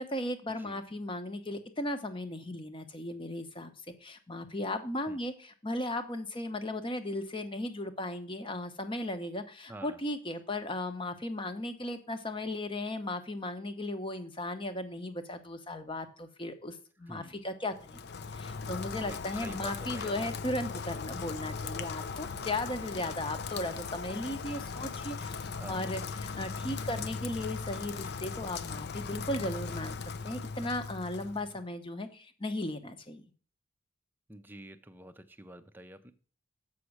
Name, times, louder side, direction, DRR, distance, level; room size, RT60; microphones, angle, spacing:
voice 1, 0.0-30.0 30.2-33.2, left 1 dB, 25° left, 8 dB, 0.9 m, -36 dB
voice 2, 9.7-10.0 17.1-17.4 19.0-20.4 25.4-25.8 34.3-36.1, right 1 dB, 10° right, 8 dB, 0.6 m, -48 dB
Rain, 17.8-31.6, left 5 dB, 50° left, 0.5 m, -38 dB
7.1 x 5.9 x 6.5 m, 0.41 s
head